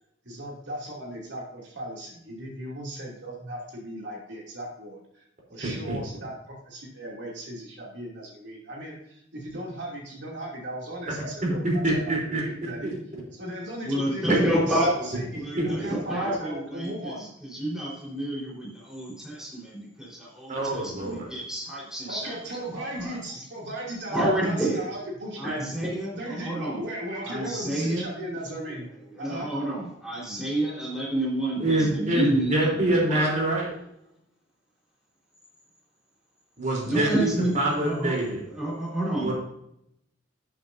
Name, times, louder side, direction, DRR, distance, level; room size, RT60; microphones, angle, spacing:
voice 1, 0.2-5.2 5.5-12.9 13.4-17.2 22.1-25.7 26.1-28.9 29.2-29.5, right 1 dB, 65° right, -3 dB, 2.8 m, -37 dB
voice 2, 5.6-6.0 11.4-12.9 15.6-15.9 20.5-21.3 31.6-33.7 36.6-38.4 39.2-39.3, right 1 dB, 40° right, -2 dB, 3.6 m, -26 dB
voice 3, 13.8-22.4 22.7-23.2 24.1-24.9 25.4-26.8 27.2-28.1 28.7-28.8 29.1-33.3 36.8-39.3, right 1 dB, 5° right, -5 dB, 4.2 m, -29 dB
12.5 x 8.7 x 2.7 m, 0.77 s
head